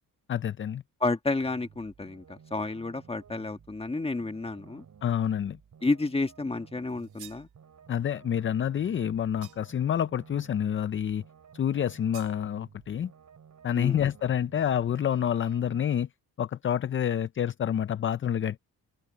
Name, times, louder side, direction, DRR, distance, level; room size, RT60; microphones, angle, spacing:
voice 1, 0.3-0.8 5.0-5.6 7.9-11.2 11.5-13.1 13.6-16.1 16.4-18.6, left 9 dB, 35° left, 0.5 m, -28 dB
voice 2, 1.0-4.8 5.8-7.5 13.8-14.0, left 3 dB, 15° left, 1.6 m, -31 dB
sound 1, 1.4-15.8, right 7 dB, 50° right, 7.4 m, -54 dB
sound 2, 6.9-7.5 9.4-9.9 12.1-12.4, right 12 dB, 90° right, 2.9 m, -50 dB
open air
cardioid pair, 115°, 36 cm